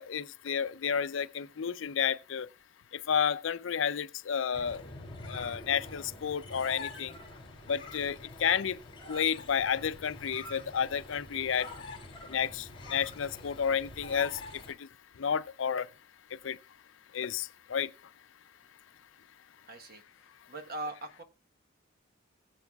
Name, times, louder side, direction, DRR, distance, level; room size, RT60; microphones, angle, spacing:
voice 1, 0.0-2.5 2.9-4.8 5.3-7.1 7.7-8.8 9.1-11.7 12.3-14.4 14.8-14.9 15.2-15.9 16.4-16.6 17.1-17.9, left 7 dB, 70° left, 0.5 m, -31 dB
sound 1, 4.5-14.7, left 2 dB, 25° left, 3.3 m, -46 dB
voice 2, 7.6-7.9 19.7-20.0 20.5-21.2, right 2 dB, 50° right, 1.2 m, -41 dB
20.0 x 7.9 x 2.3 m
head